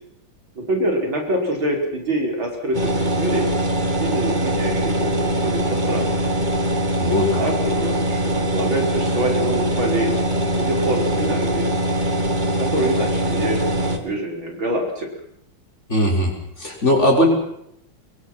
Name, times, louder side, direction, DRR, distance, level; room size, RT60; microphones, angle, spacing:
voice 1, 0.5-3.5 4.0-6.4 7.4-10.2 10.5-11.7 12.6-15.1, right 1 dB, 70° right, 1 dB, 6.0 m, -25 dB
sound 1, 2.7-14.0, right 1 dB, 20° right, 2.5 m, -22 dB
voice 2, 7.0-7.4 15.9-17.3, left 1 dB, 30° left, 0 dB, 6.4 m, -19 dB
25.0 x 22.5 x 6.1 m, 0.75 s
omnidirectional pair, 2.3 m